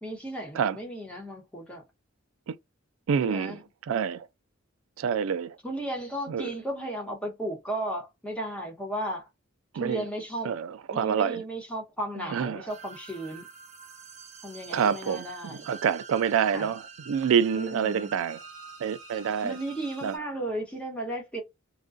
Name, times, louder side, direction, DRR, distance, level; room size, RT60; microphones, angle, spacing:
voice 1, 0.0-1.8 3.2-3.6 5.6-9.3 9.7-10.5 10.9-13.5 14.4-15.7 16.5-16.7 17.5-18.1 19.4-21.4, right 1 dB, 5° left, 0.9 m, -35 dB
voice 2, 3.1-3.6 3.9-4.3 5.0-5.6 6.3-6.5 9.7-10.0 10.4-11.4 12.3-12.6 14.7-18.4 18.8-19.6 20.0-20.1, right 7 dB, 80° right, 0.3 m, -27 dB
sound 1, 12.7-20.2, right 4 dB, 35° right, 0.8 m, -46 dB
2.4 x 2.2 x 2.3 m
head